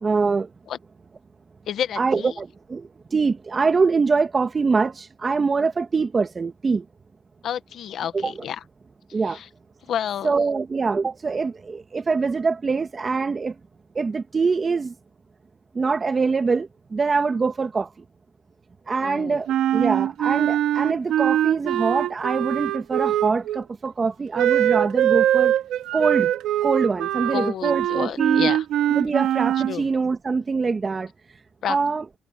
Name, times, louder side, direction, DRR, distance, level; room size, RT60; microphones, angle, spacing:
voice 1, 0.0-0.5 2.0-2.9 3.1-4.9 5.2-6.8 8.1-8.3 9.1-9.4 10.2-13.5 14.0-14.9 15.8-17.9 18.9-19.5 19.7-25.5 25.9-26.3 26.6-28.5 28.9-31.1 31.7-32.0, right 4 dB, 35° right, 2.2 m, -24 dB
voice 2, 1.7-2.3 7.4-8.6 9.3-9.5 9.9-10.4 19.0-19.4 27.2-28.6 29.7-29.9 31.6-31.8, left 9 dB, 70° left, 1.2 m, -30 dB
Wind instrument woodwind instrument, 19.5-23.6 24.3-29.8, right 12 dB, 85° right, 2.6 m, -22 dB
cardioid pair, 90°, 0 cm